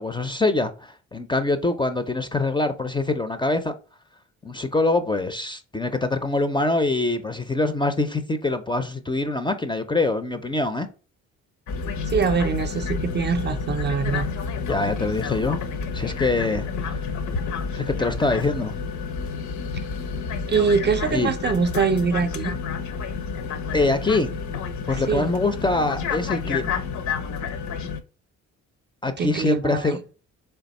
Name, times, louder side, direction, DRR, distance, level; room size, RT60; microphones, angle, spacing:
voice 1, 0.0-3.7 4.4-10.9 14.7-15.6 15.9-16.7 17.7-18.8 21.1-21.3 23.7-24.3 24.9-26.8 29.0-30.0, left 2 dB, 15° left, 0.4 m, -24 dB
sound 1, 11.7-28.0, left 5 dB, 70° left, 0.7 m, -29 dB
voice 2, 12.1-14.3 20.5-22.6 25.1-25.3 29.2-30.0, right 5 dB, 35° right, 0.5 m, -23 dB
3.4 x 3.4 x 4.1 m
cardioid pair, 90°, 30 cm